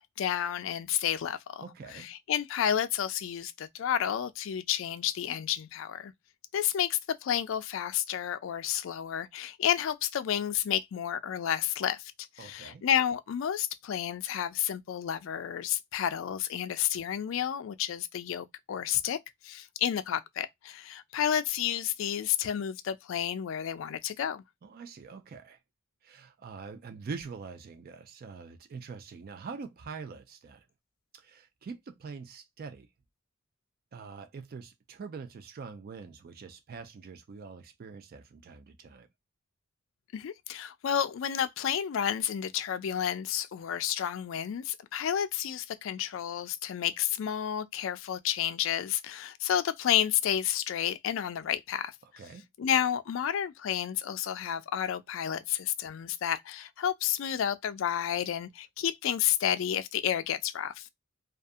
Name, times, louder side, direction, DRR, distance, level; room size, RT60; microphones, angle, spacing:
voice 1, 0.2-1.6 1.9-6.1 6.5-12.1 12.4-19.2 19.4-24.4 40.1-51.9 52.6-60.9, left 10 dB, 65° left, 0.3 m, -31 dB
voice 2, 1.6-2.1 12.4-12.8 24.6-25.6 26.0-30.7 31.1-32.9 33.9-39.1 52.2-52.4, right 5 dB, 45° right, 0.3 m, -44 dB
2.4 x 2.4 x 2.5 m
head